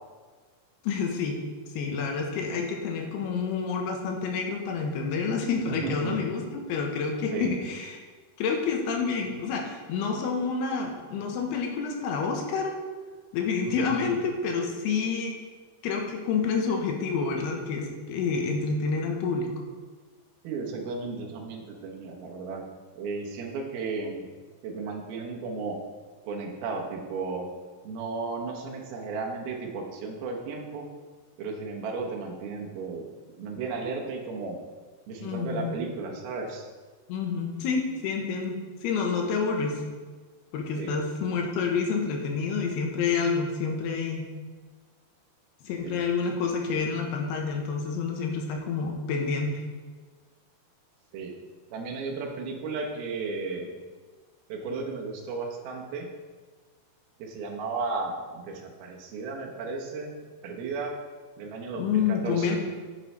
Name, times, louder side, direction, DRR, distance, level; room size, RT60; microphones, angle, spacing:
voice 1, 0.8-1.4 1.7-8.0 8.4-12.7 13.3-15.3 15.8-19.5 35.2-35.8 37.1-38.6 38.8-39.7 40.5-44.3 45.6-49.6 61.8-62.6, left 5 dB, 85° left, 2 dB, 3.1 m, -28 dB
voice 2, 5.7-6.2 7.3-7.6 20.4-22.6 23.0-24.2 24.6-25.8 26.2-27.5 27.8-30.9 31.4-34.6 35.1-36.7 40.8-40.9 45.8-46.0 51.1-51.3 51.7-53.7 54.5-56.1 57.2-60.1 60.4-60.9 61.4-62.6, right 4 dB, 75° right, 1 dB, 2.9 m, -34 dB
9.3 x 9.2 x 3.3 m, 1.4 s
omnidirectional pair, 4.5 m